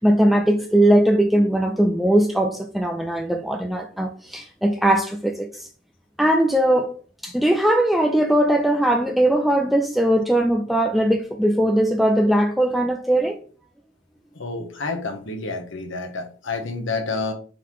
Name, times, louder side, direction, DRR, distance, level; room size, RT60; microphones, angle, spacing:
voice 1, 0.0-5.7 6.2-6.9 7.2-13.4, right 1 dB, ahead, 0.5 m, -19 dB
voice 2, 14.3-17.3, left 3 dB, 70° left, 1.1 m, -29 dB
9.3 x 4.0 x 3.1 m
head